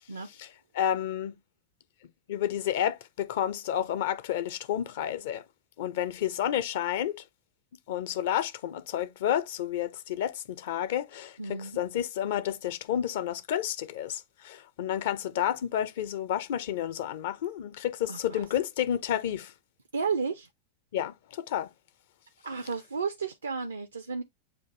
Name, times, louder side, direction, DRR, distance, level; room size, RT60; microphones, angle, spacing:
voice 1, 0.7-1.4 2.3-5.4 5.8-7.2 7.9-19.5 20.9-21.7, left 10 dB, 55° left, 0.5 m, -30 dB
voice 2, 11.4-11.8 18.1-18.4 19.9-20.5 22.4-24.2, right 5 dB, 75° right, 0.5 m, -33 dB
7.0 x 2.5 x 2.9 m
figure-of-eight pair, 90°, 0 cm